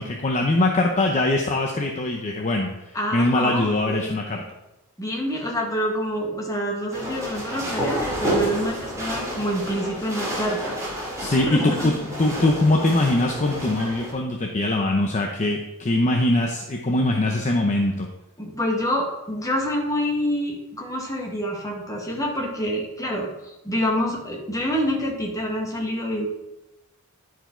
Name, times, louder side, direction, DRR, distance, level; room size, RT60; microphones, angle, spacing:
voice 1, 0.0-4.4 11.2-11.9 12.2-18.1, left 2 dB, 35° left, 2 dB, 0.7 m, -22 dB
voice 2, 2.9-4.2 5.0-10.8 11.3-11.9 18.4-26.3, equal, 15° left, -1 dB, 1.6 m, -27 dB
sound 1, 6.9-14.1, equal, 15° right, 2.4 m, -30 dB
10.5 x 4.7 x 4.4 m, 0.97 s
head